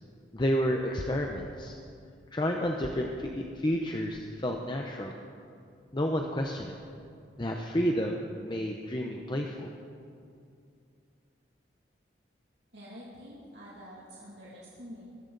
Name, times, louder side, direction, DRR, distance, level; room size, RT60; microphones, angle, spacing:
voice 1, 0.3-1.7 2.3-5.1 5.9-6.8 7.4-9.7, equal, 25° left, 2 dB, 0.8 m, -30 dB
voice 2, 12.7-15.1, equal, 70° right, -6 dB, 2.5 m, -47 dB
21.0 x 14.0 x 4.0 m, 2.4 s
head